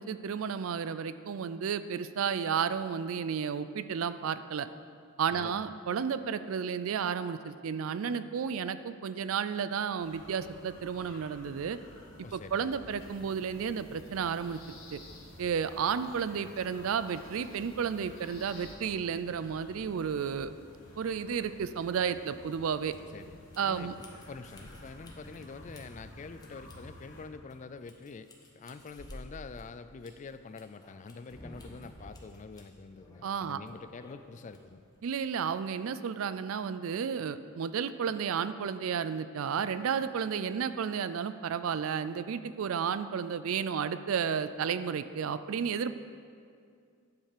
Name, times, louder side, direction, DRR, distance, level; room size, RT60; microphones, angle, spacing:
voice 1, 0.0-4.7 5.2-11.8 12.3-14.6 14.9-15.0 15.4-20.5 21.0-22.9 23.6-23.9 33.2-33.6 35.0-45.9, right 7 dB, 75° right, 13 dB, 0.4 m, -32 dB
voice 2, 5.3-5.7 12.2-12.7 22.9-28.3 28.5-34.8, left 4 dB, 35° left, 12 dB, 0.3 m, -46 dB
sound 1, 10.0-27.2, equal, 60° left, 2.9 m, -53 dB
sound 2, 12.9-18.7, left 2 dB, 75° left, 1.6 m, -55 dB
sound 3, 22.5-35.4, left 1 dB, 20° left, 1.1 m, -54 dB
10.5 x 5.5 x 6.6 m, 2.3 s
head